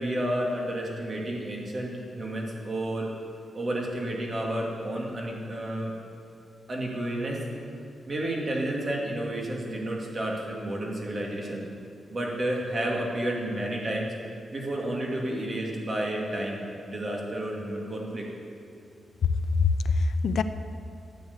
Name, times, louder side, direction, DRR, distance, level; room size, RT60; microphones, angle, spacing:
voice 1, 0.0-3.1 3.5-5.9 6.7-7.4 8.1-11.6 12.1-14.1 14.5-16.6 16.8-18.3, right 1 dB, 35° right, -2 dB, 2.5 m, -31 dB
voice 2, 19.3-20.4, left 4 dB, 75° left, 11 dB, 0.6 m, -24 dB
13.5 x 8.4 x 8.1 m, 2.5 s
wide cardioid pair, 145°, 0 cm